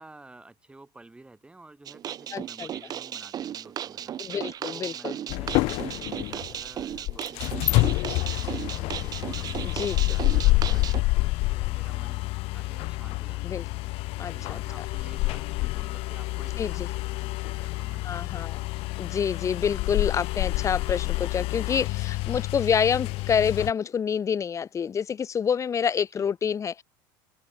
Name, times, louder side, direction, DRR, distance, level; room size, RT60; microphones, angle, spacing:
voice 1, 0.0-13.6 14.1-16.8 17.1-18.5 26.1-26.3, right 2 dB, 10° right, 4.0 m, -51 dB
sound 1, 1.9-11.0, right 10 dB, 35° right, 0.8 m, -35 dB
voice 2, 2.3-2.7 4.2-5.1 9.6-10.2 13.4-13.6 14.2-14.6 16.6-16.9 18.0-18.5 19.0-26.8, left 7 dB, 25° left, 1.3 m, -27 dB
sound 2, 5.3-23.7, left 22 dB, 60° left, 1.1 m, -28 dB
open air
supercardioid pair, 110°, 11 cm